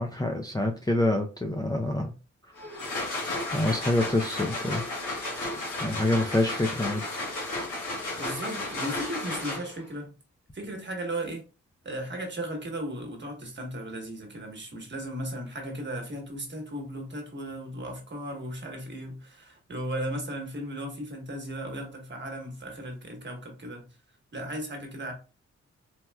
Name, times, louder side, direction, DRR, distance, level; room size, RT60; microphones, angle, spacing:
voice 1, 0.0-2.1 3.5-4.8 5.8-7.0, left 2 dB, 15° left, 0.4 m, -26 dB
sound 1, 2.6-9.9, left 2 dB, 85° left, 1.3 m, -33 dB
voice 2, 8.2-10.2 10.5-11.4 11.8-23.9 24.3-25.1, right 1 dB, 40° right, 1.2 m, -36 dB
4.2 x 2.2 x 2.2 m
cardioid pair, 65°, 29 cm